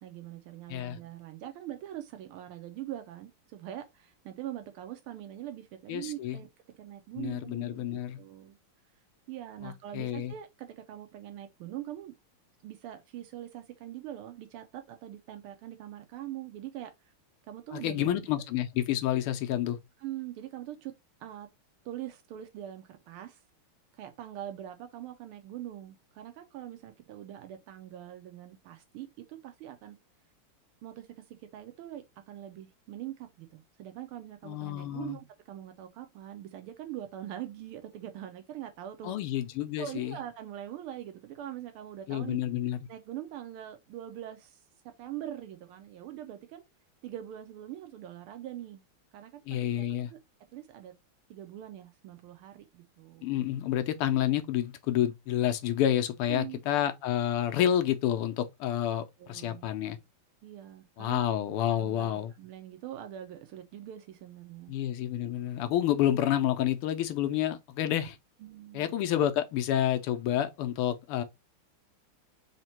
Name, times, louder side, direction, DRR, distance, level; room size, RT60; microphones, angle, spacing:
voice 1, 0.0-6.5 6.7-7.8 8.2-8.6 9.3-12.1 12.6-16.9 17.5-18.3 20.0-20.9 21.2-21.5 21.8-23.4 24.0-30.0 30.8-39.1 39.8-42.4 42.9-44.6 45.0-46.6 47.0-48.8 49.1-50.2 50.5-50.9 51.3-53.3 56.3-56.6 59.2-59.7 60.4-64.7 68.4-68.9, right 12 dB, 85° right, 1.5 m, -43 dB
voice 2, 5.9-6.4 7.2-8.2 9.6-10.3 17.7-19.8 34.4-35.2 39.0-40.2 42.1-42.8 49.5-50.1 53.2-60.0 61.0-62.3 64.7-68.2 68.7-71.2, left 11 dB, 85° left, 1.6 m, -29 dB
4.2 x 2.9 x 4.3 m
omnidirectional pair, 2.4 m